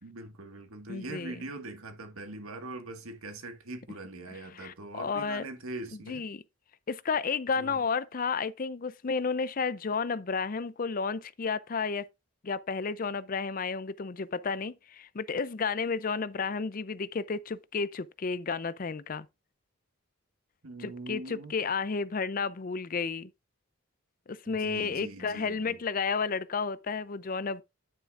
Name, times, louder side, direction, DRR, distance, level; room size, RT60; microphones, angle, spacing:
voice 1, 0.0-6.3 7.6-7.8 20.6-21.6 24.5-25.8, right 2 dB, 85° right, 1.8 m, -42 dB
voice 2, 0.9-1.4 4.5-5.5 6.1-6.4 6.9-12.1 12.4-19.3 20.8-23.3 24.3-27.6, left 5 dB, 40° left, 0.5 m, -32 dB
9.8 x 9.1 x 2.5 m
head